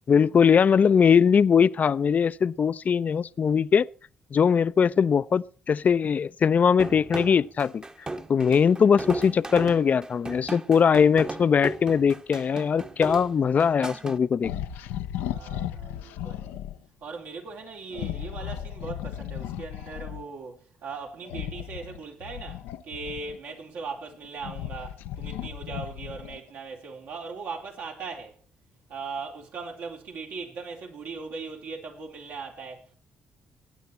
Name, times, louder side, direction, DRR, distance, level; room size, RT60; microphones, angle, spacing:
voice 1, 0.1-3.9 4.3-7.8 8.3-14.5, left 6 dB, 50° left, 0.6 m, -21 dB
sound 1, 6.8-14.2, right 2 dB, 25° right, 1.3 m, -36 dB
sound 2, 14.4-16.8 17.9-20.3 21.2-23.5 24.1-26.5, left 11 dB, 85° left, 0.7 m, -35 dB
voice 2, 15.2-16.6 17.0-28.4 28.9-33.0, right 4 dB, 70° right, 4.0 m, -39 dB
20.5 x 9.2 x 4.5 m
supercardioid pair, 55°, 3 cm